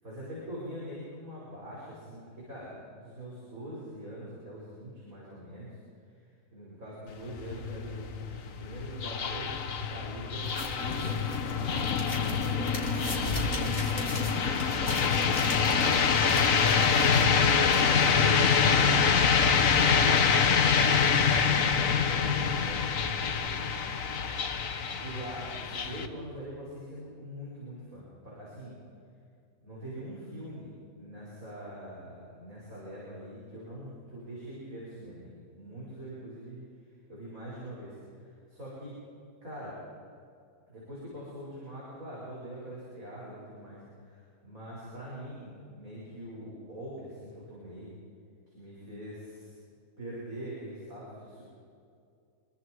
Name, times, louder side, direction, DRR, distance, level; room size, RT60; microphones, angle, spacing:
voice 1, 0.0-5.8 6.2-6.3 6.5-15.9 16.2-20.1 20.6-24.3 24.7-28.8 29.6-36.6 37.1-39.0 39.4-39.8 40.7-47.9 48.5-49.5 50.0-51.4, equal, 65° right, -7 dB, 6.6 m, -43 dB
sound 1, 7.1-26.1, left 6 dB, 65° left, 1.6 m, -26 dB
sound 2, 10.4-18.6, left 1 dB, 40° left, 3.5 m, -40 dB
27.0 x 23.0 x 4.8 m, 2.4 s
omnidirectional pair, 1.5 m